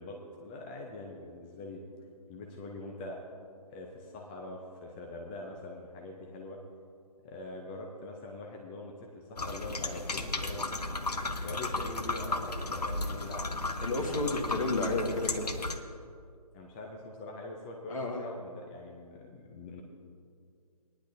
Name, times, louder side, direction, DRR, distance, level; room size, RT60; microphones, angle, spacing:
voice 1, 0.0-1.9 2.3-3.2 3.7-6.6 7.2-10.9 11.4-13.5 16.5-19.8, left 2 dB, 15° left, 0 dB, 0.6 m, -43 dB
sound 1, 9.4-15.8, left 2 dB, 90° left, 0.8 m, -34 dB
voice 2, 13.8-15.5 17.9-18.3, left 2 dB, 60° left, 2 dB, 1.9 m, -31 dB
18.5 x 10.5 x 2.7 m, 2.3 s
figure-of-eight pair, 145°, 20 cm